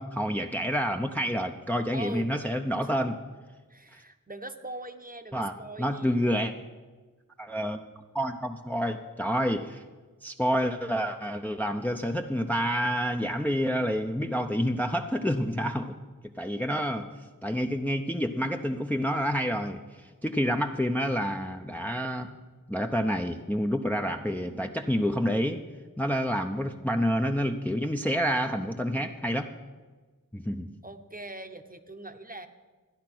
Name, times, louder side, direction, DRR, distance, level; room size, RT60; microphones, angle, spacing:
voice 1, 0.0-3.2 5.3-6.5 7.4-7.8 8.1-9.8 10.2-16.0 16.4-17.1 17.4-22.3 22.7-25.6 26.0-29.5 30.3-30.7, equal, 5° left, 5 dB, 0.6 m, -28 dB
voice 2, 1.9-2.3 3.7-6.2 30.8-32.5, right 2 dB, 25° right, 7 dB, 0.9 m, -41 dB
13.5 x 10.0 x 6.0 m, 1.3 s
wide cardioid pair, 50°, 34 cm